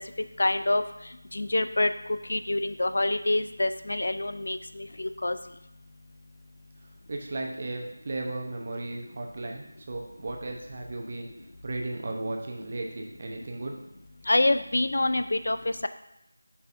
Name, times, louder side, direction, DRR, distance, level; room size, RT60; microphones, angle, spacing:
voice 1, 0.4-0.8 1.3-1.9 2.3-5.4 14.3-15.9, left 2 dB, 65° left, 10 dB, 0.4 m, -26 dB
voice 2, 7.1-11.3 11.6-13.8, right 2 dB, 35° right, 1 dB, 0.8 m, -35 dB
6.6 x 5.5 x 2.6 m, 0.83 s
figure-of-eight pair, 170°, 0 cm